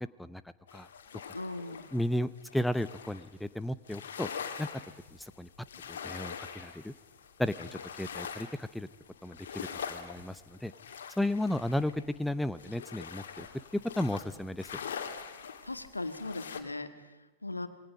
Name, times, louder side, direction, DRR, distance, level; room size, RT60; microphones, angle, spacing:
sound 1, 0.7-3.4 3.9-16.6, left 7 dB, 60° left, 2.7 m, -44 dB
voice 1, 1.3-1.9 15.6-17.7, left 2 dB, 80° left, 9 dB, 1.9 m, -39 dB
voice 2, 1.9-4.3 4.6-4.7 5.2-5.5 5.9-6.9 7.4-8.9 9.2-10.7 11.2-13.5 14.0-14.7, left 1 dB, 5° left, 14 dB, 0.8 m, -34 dB
27.5 x 23.0 x 5.2 m, 1.1 s
figure-of-eight pair, 90°, 0 cm